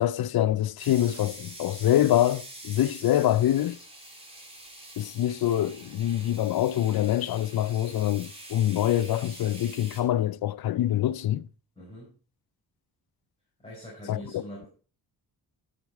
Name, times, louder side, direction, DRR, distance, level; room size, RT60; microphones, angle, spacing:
voice 1, 0.0-3.8 5.0-11.5 14.1-14.4, left 12 dB, 70° left, 0.5 m, -25 dB
sound 1, 0.8-10.0, right 1 dB, 15° right, 3.2 m, -45 dB
voice 2, 11.8-12.1 13.6-14.7, equal, 15° left, 5.3 m, -43 dB
12.5 x 6.5 x 4.6 m
wide cardioid pair, 110°, 39 cm